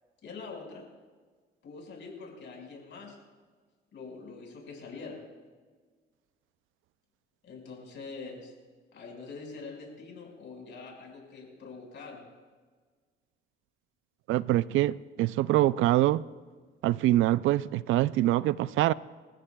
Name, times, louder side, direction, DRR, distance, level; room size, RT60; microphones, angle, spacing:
voice 1, 0.2-0.8 1.6-3.2 3.9-5.2 7.4-8.5 8.9-12.2, left 4 dB, 70° left, 5.3 m, -44 dB
voice 2, 14.3-16.2 16.8-18.9, right 15 dB, 85° right, 0.4 m, -24 dB
29.5 x 14.5 x 2.3 m
cardioid pair, 90°, 20 cm